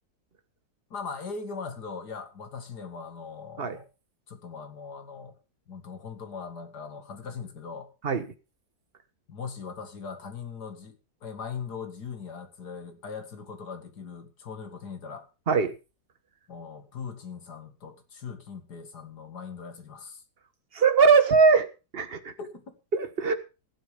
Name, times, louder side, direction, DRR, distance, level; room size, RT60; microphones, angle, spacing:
voice 1, 0.9-3.8 4.3-5.4 5.7-7.9 9.3-15.3 16.5-20.2 22.4-22.8, left 5 dB, 85° left, 2.5 m, -40 dB
voice 2, 20.7-21.7 21.9-22.3 22.9-23.3, right 5 dB, 40° right, 1.5 m, -21 dB
15.0 x 8.2 x 5.2 m
omnidirectional pair, 1.7 m